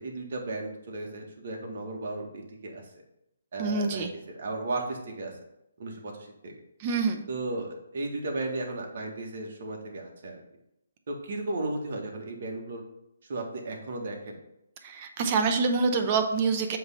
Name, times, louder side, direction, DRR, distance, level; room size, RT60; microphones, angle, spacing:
voice 1, 0.0-2.8 3.5-5.4 5.8-6.6 7.3-10.4 11.1-12.8 13.2-14.4, right 2 dB, 55° right, 0 dB, 1.8 m, -35 dB
voice 2, 3.6-4.1 6.8-7.2 14.8-16.8, right 4 dB, 35° right, 6 dB, 0.8 m, -26 dB
7.8 x 3.5 x 5.6 m, 0.83 s
hypercardioid pair, 150°, 0 cm